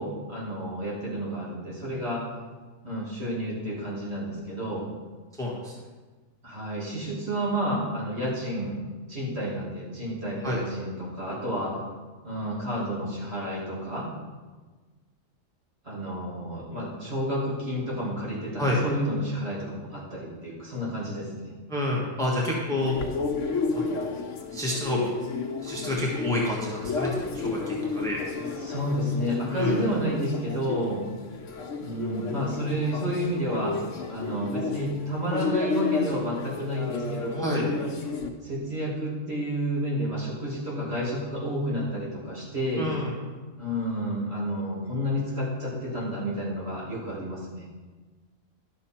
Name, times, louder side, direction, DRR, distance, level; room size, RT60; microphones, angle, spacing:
voice 1, 0.0-2.2 2.8-4.9 6.4-8.8 9.1-11.8 12.2-14.1 15.8-21.5 28.6-31.0 31.8-33.8 34.1-37.7 38.4-42.9 43.6-47.7, equal, 55° right, -6 dB, 2.8 m, -30 dB
voice 2, 5.4-5.7 10.4-10.6 18.6-18.8 21.7-23.0 23.7-25.1 25.6-28.2 29.5-29.9 37.4-37.6 42.8-43.1, left 1 dB, 5° left, -3 dB, 1.4 m, -29 dB
sound 1, 22.8-38.3, left 4 dB, 75° left, 1.3 m, -32 dB
11.5 x 6.4 x 4.4 m, 1.3 s
omnidirectional pair, 1.3 m